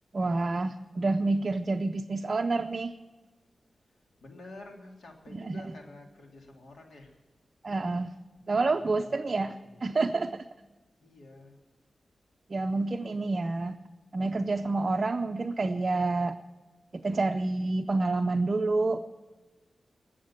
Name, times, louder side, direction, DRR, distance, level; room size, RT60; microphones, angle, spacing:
voice 1, 0.1-2.9 5.3-5.6 7.6-8.1 8.5-9.5 9.8-10.5 12.5-13.8 14.1-16.4 17.0-19.0, right 3 dB, 40° right, 5 dB, 0.6 m, -28 dB
voice 2, 4.2-7.2 8.5-9.8 11.0-11.6, left 2 dB, 85° left, 1 dB, 3.1 m, -49 dB
20.5 x 7.5 x 8.9 m, 1.2 s
wide cardioid pair, 125°, 0 cm